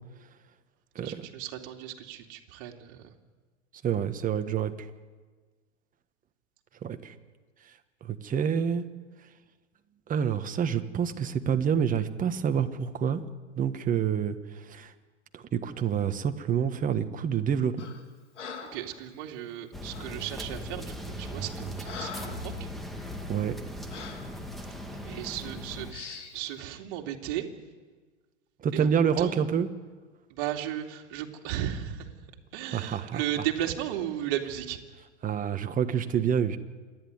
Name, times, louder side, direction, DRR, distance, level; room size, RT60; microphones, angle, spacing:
voice 1, 1.0-3.1 18.7-22.7 25.0-27.4 28.7-29.5 30.3-34.8, right 11 dB, 50° right, 3 dB, 2.8 m, -35 dB
voice 2, 3.8-4.7 6.8-7.1 8.1-8.8 10.1-13.2 13.5-14.4 14.7-14.9 15.3-17.8 23.3-23.5 28.6-29.7 32.7-33.2 35.2-36.6, right 8 dB, 25° right, 8 dB, 1.5 m, -27 dB
Breathing, 17.8-18.0 18.4-18.9 19.9-20.2 20.9-21.0 21.4-22.5 22.9-23.1 23.9-24.3 25.0-25.2 25.9-26.4, left 6 dB, 80° left, 3.1 m, -42 dB
sound 1, 19.7-25.9, equal, ahead, 2.2 m, -38 dB
27.5 x 11.0 x 9.7 m, 1.4 s
hypercardioid pair, 110°, 36 cm